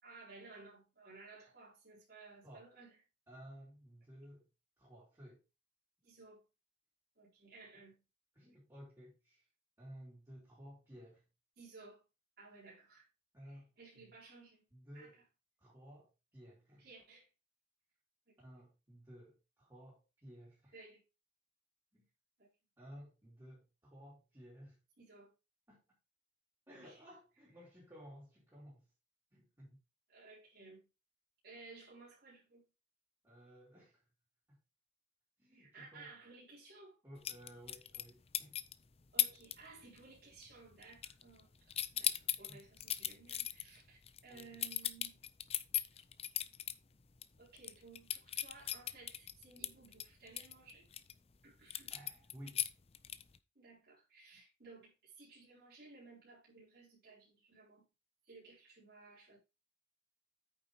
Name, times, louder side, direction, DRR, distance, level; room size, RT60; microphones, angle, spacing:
voice 1, 0.0-2.9 6.0-6.4 7.1-8.0 11.6-12.0 12.4-13.1 13.4-14.6 14.9-15.2 16.8-17.3 18.3-18.4 20.7-21.0 22.4-22.5 25.0-25.3 26.7-27.0 30.1-30.9 31.4-32.6 35.5-37.0 39.1-45.2 47.4-50.9 51.4-51.9 53.5-57.8 58.2-59.4, right 3 dB, 55° right, 4.4 m, -57 dB
voice 2, 3.3-4.5 4.8-5.4 8.3-9.5 9.8-11.2 13.3-14.1 14.7-15.2 15.6-16.9 18.4-20.7 21.9-22.0 22.8-24.8 25.7-25.8 26.7-28.9 29.3-29.8 33.2-34.0 34.5-34.6 35.4-36.1 37.0-38.6 42.5-42.6 44.3-44.6 51.9-52.7, equal, 15° right, 4.2 m, -56 dB
sound 1, 37.2-38.1 38.3-38.7 39.2-39.5 39.8-40.2 40.4-41.4 41.7-46.7 47.2-47.3 47.6-51.1 51.7-53.4, left 11 dB, 35° left, 0.5 m, -37 dB
9.1 x 7.0 x 3.4 m
head